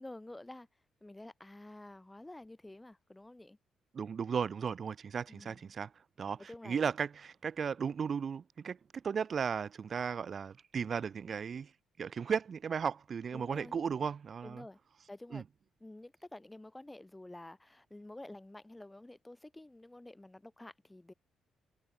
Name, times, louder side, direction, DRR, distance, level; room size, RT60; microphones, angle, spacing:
voice 1, 0.0-3.6 5.3-5.6 6.4-6.8 13.3-13.8 14.4-14.8 15.1-15.4 15.8-21.1, left 1 dB, 10° left, 2.0 m, -50 dB
voice 2, 3.9-5.9 6.2-11.7 12.0-14.7 15.3-15.4, right 6 dB, 45° right, 0.6 m, -35 dB
cardioid pair, 90°, 0 cm